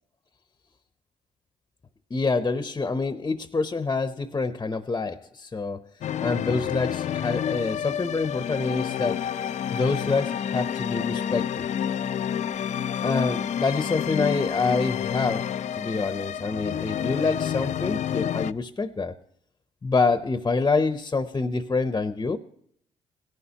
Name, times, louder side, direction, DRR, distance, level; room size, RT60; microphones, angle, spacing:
voice 1, 2.1-5.8 6.2-9.2 9.7-11.7 13.0-15.5 15.8-19.1 19.8-22.4, left 4 dB, 25° left, 10 dB, 0.7 m, -26 dB
sound 1, 6.0-18.5, left 9 dB, 55° left, 0.4 m, -29 dB
17.0 x 11.0 x 2.8 m, 0.69 s
cardioid pair, 90°, 14 cm